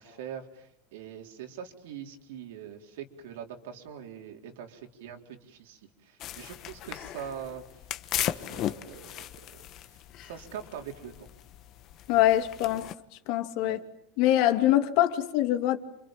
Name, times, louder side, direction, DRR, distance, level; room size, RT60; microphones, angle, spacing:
voice 1, 0.0-7.6 8.2-11.3 13.6-13.8, right 8 dB, 85° right, 4.1 m, -43 dB
sound 1, 6.2-12.9, left 12 dB, 45° left, 1.3 m, -37 dB
voice 2, 12.1-12.9 13.3-13.8 14.2-15.8, left 13 dB, 60° left, 2.7 m, -24 dB
29.5 x 26.5 x 7.5 m
supercardioid pair, 135°, 0 cm